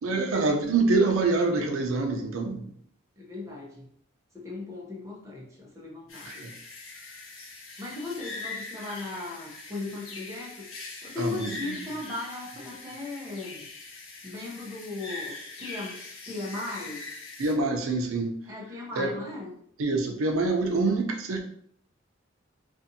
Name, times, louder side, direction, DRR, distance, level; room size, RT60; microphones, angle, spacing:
voice 1, 0.0-2.7 6.2-6.5 11.2-11.8 17.4-18.4 19.0-19.2 19.8-21.4, right 3 dB, 90° right, 2 dB, 0.5 m, -26 dB
voice 2, 3.2-3.9 4.3-6.5 7.8-13.7 14.2-16.0 16.3-17.1 18.5-19.5, left 3 dB, 15° right, -4 dB, 0.7 m, -37 dB
sound 1, 6.1-17.5, left 3 dB, 70° left, 0.6 m, -42 dB
2.5 x 2.5 x 2.6 m, 0.66 s
head